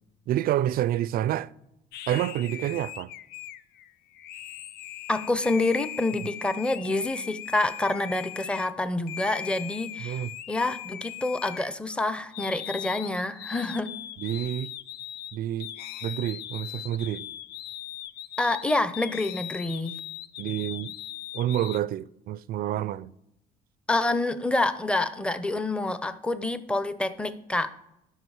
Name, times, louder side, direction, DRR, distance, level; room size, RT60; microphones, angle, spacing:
voice 1, 0.3-1.5 2.1-3.1 10.0-10.3 14.2-14.7 15.3-15.7 16.0-17.2 20.4-20.9 21.3-23.1, right 12 dB, 60° right, 0.4 m, -28 dB
sound 1, 1.9-8.7 9.1-12.0 12.3-21.8, left 12 dB, 75° left, 0.5 m, -40 dB
voice 2, 5.1-10.2 10.5-13.9 18.4-20.0 23.9-27.7, left 2 dB, 5° left, 0.6 m, -27 dB
13.0 x 5.7 x 4.8 m
cardioid pair, 110°, 17 cm